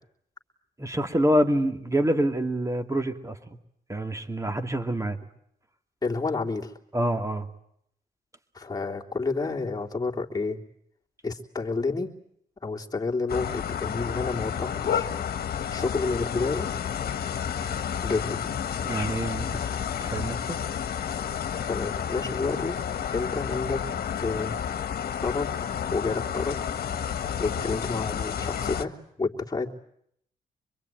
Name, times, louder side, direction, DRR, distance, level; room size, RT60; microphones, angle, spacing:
voice 1, 0.8-3.6 3.9-5.2 6.9-7.5 18.8-19.6 20.0-20.6, right 1 dB, 20° right, 7 dB, 2.5 m, -26 dB
voice 2, 6.0-6.7 8.5-10.6 11.2-12.1 12.6-15.1 15.7-16.7 18.0-18.6 21.7-22.8 23.1-23.8 24.2-24.6 25.2-25.5 25.9-26.6 27.4-29.7, left 3 dB, 25° left, -1 dB, 3.3 m, -29 dB
sound 1, 13.3-28.8, left 8 dB, 70° left, 1.5 m, -31 dB
25.5 x 22.5 x 9.3 m, 0.72 s
cardioid pair, 65°, 17 cm